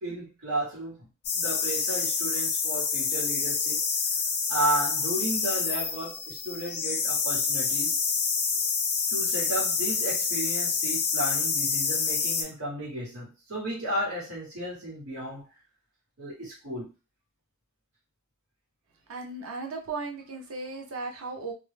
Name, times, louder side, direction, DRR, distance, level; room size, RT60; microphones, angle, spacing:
voice 1, 0.0-1.1 1.3-3.8 4.5-8.0 9.1-15.5 16.2-16.9, right 1 dB, 85° right, -6 dB, 1.1 m, -33 dB
sound 1, 1.2-12.4, left 5 dB, 75° left, 0.6 m, -27 dB
voice 2, 19.1-21.5, right 3 dB, 65° right, 1 dB, 0.6 m, -36 dB
2.2 x 2.0 x 3.1 m, 0.28 s
head